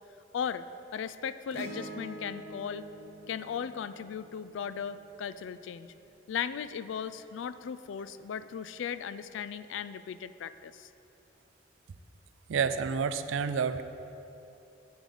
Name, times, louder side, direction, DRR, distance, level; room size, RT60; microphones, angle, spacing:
voice 1, 0.3-0.6 0.9-2.8 3.3-5.9 6.3-10.9, left 7 dB, 75° left, 14 dB, 0.3 m, -37 dB
Acoustic guitar / Strum, 1.5-6.1 8.0-8.1, right 1 dB, 55° right, 0.9 m, -46 dB
voice 2, 12.5-13.8, right 6 dB, 85° right, 11 dB, 0.4 m, -29 dB
8.1 x 8.0 x 3.9 m, 2.8 s
head